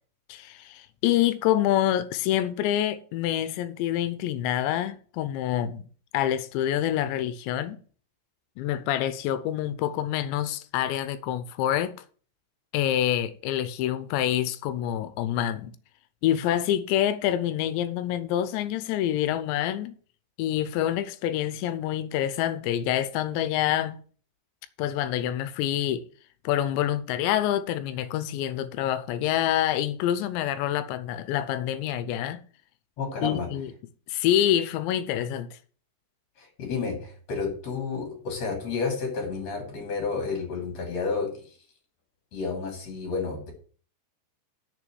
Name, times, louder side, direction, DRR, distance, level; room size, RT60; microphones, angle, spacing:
voice 1, 0.3-5.8 6.1-7.8 8.6-12.0 12.7-15.8 16.2-19.9 20.4-24.0 24.8-26.0 26.4-32.4 33.2-33.7 34.1-35.5, left 11 dB, 85° left, 2.8 m, -26 dB
voice 2, 33.0-33.5 36.4-41.3 42.3-43.5, left 4 dB, 40° left, 3.4 m, -31 dB
6.9 x 6.2 x 7.6 m
omnidirectional pair, 5.2 m